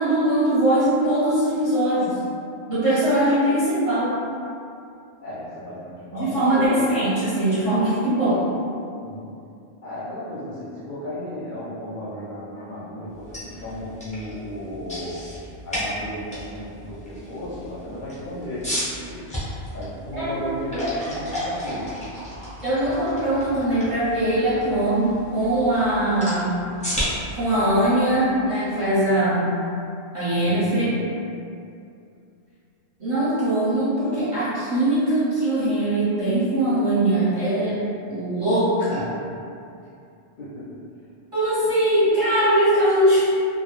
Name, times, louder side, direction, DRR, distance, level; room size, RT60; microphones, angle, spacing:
voice 1, 0.0-2.2 2.7-4.2 6.1-8.4 20.1-20.6 22.6-25.0 25.3-26.5 27.4-29.5 30.1-30.9 33.0-37.8 38.1-39.1 41.3-43.2, right 1 dB, 35° right, -12 dB, 0.6 m, -21 dB
voice 2, 5.2-6.8 9.0-9.3 9.8-15.2 15.6-19.3 19.7-22.0 24.4-24.6 30.3-31.1 40.4-40.8, left 1 dB, 60° left, -10 dB, 0.6 m, -34 dB
sound 1, 13.1-29.0, equal, 10° left, 0.6 m, -34 dB
2.1 x 2.0 x 2.9 m, 2.5 s
omnidirectional pair, 1.1 m